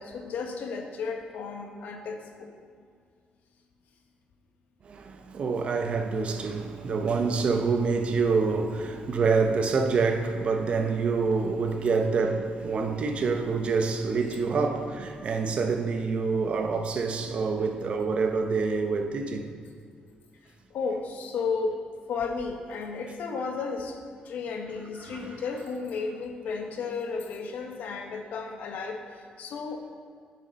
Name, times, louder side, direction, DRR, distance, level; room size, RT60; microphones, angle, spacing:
voice 1, 0.0-2.5 20.4-21.8 22.1-24.0 24.2-30.0, left 4 dB, 75° left, 1.0 m, -33 dB
voice 2, 4.8-19.5 25.0-25.4, right 4 dB, 40° right, 0.7 m, -26 dB
9.7 x 6.8 x 4.0 m
cardioid pair, 160°, 3 cm